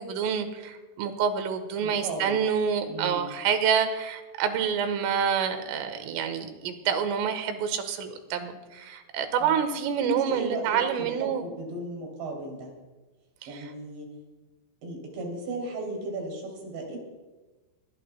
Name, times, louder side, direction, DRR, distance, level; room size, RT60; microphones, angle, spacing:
voice 1, 0.0-11.5 13.4-13.7, right 7 dB, 80° right, 8 dB, 3.7 m, -27 dB
voice 2, 1.8-2.4 2.9-3.3 9.4-9.6 10.0-12.7 13.5-14.1 14.8-17.0, right 2 dB, 60° right, 0 dB, 5.1 m, -35 dB
24.0 x 19.5 x 2.3 m, 1.2 s
omnidirectional pair, 5.9 m